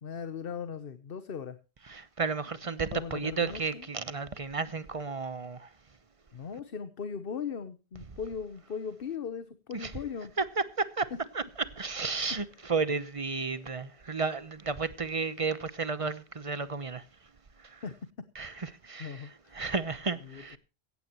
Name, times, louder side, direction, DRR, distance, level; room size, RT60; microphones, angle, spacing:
voice 1, 0.0-1.6 2.9-3.9 6.3-10.3 17.8-17.9 18.4-19.6 20.2-20.6, left 6 dB, 60° left, 1.1 m, -39 dB
voice 2, 1.9-5.7 9.7-9.9 10.6-11.4 11.8-17.1 17.6-17.8 18.4-20.6, right 4 dB, 35° right, 0.9 m, -33 dB
16.5 x 14.5 x 3.0 m
omnidirectional pair, 1.1 m